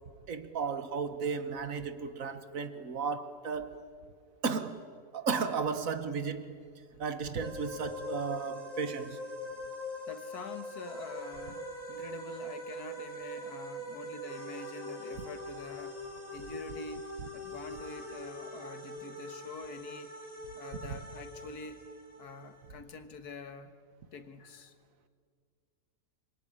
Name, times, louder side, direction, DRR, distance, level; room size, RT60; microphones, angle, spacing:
voice 1, 0.3-3.7 4.4-4.8 5.1-6.5 7.0-9.2 20.9-21.0, right 5 dB, 60° right, 1.6 m, -34 dB
sound 1, 7.4-22.8, left 1 dB, 25° right, 4.0 m, -43 dB
voice 2, 10.1-16.0 16.3-17.1 17.3-20.1 20.6-21.8 22.2-23.7 24.1-24.7, left 4 dB, 90° left, 1.9 m, -46 dB
26.0 x 22.5 x 8.8 m
omnidirectional pair, 1.6 m